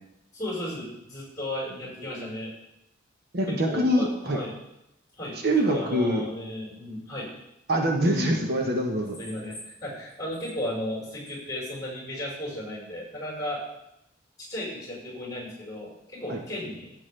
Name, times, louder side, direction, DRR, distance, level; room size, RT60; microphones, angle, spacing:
voice 1, 0.3-2.5 3.5-4.5 5.1-7.3 9.2-13.6 14.4-16.9, left 1 dB, 20° left, -5 dB, 4.7 m, -35 dB
voice 2, 3.3-4.4 5.4-6.2 7.7-9.2 16.3-16.4, right 1 dB, 50° right, 1 dB, 1.1 m, -24 dB
14.0 x 8.1 x 3.4 m, 0.85 s
head